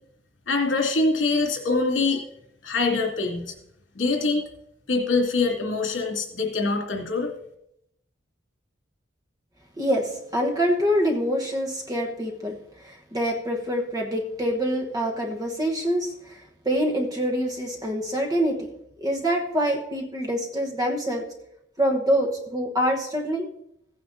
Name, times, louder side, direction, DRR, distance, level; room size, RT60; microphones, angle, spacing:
voice 1, 0.5-2.2 2.6-3.6 3.9-4.4 4.9-7.3, left 3 dB, 80° left, 0 dB, 2.6 m, -24 dB
voice 2, 9.8-12.6 12.8-16.4 16.6-18.7 19.0-21.2 21.8-23.5, equal, 20° right, 1 dB, 1.1 m, -25 dB
16.0 x 9.2 x 2.7 m, 0.76 s
head